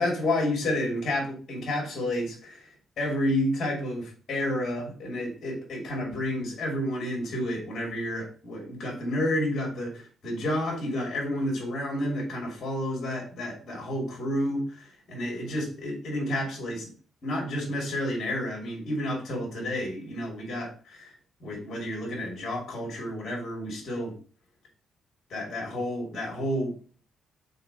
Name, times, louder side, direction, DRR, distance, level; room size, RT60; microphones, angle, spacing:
voice 1, 0.0-2.6 3.0-16.9 17.2-21.1 21.4-24.2 25.3-26.7, left 1 dB, 35° left, -1 dB, 3.0 m, -30 dB
5.7 x 4.0 x 5.7 m, 0.38 s
cardioid pair, 180°, 0 cm